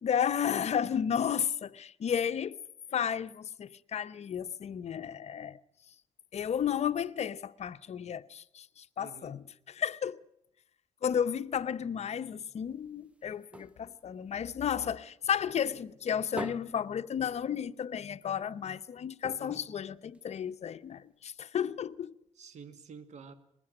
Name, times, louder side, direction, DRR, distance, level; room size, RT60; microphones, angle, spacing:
voice 1, 0.0-2.6 2.9-5.6 6.3-9.4 9.8-10.2 11.0-22.1, left 8 dB, 60° left, 0.8 m, -33 dB
voice 2, 9.0-9.4 12.1-12.3 15.9-16.0 19.4-19.6 22.3-23.3, right 5 dB, 65° right, 1.8 m, -50 dB
sound 1, 12.6-15.3 15.6-17.9 18.2-18.3 18.6-18.7 19.2-20.7 21.3-21.4, equal, 10° right, 1.0 m, -46 dB
21.0 x 16.0 x 8.9 m
cardioid pair, 90°, 13 cm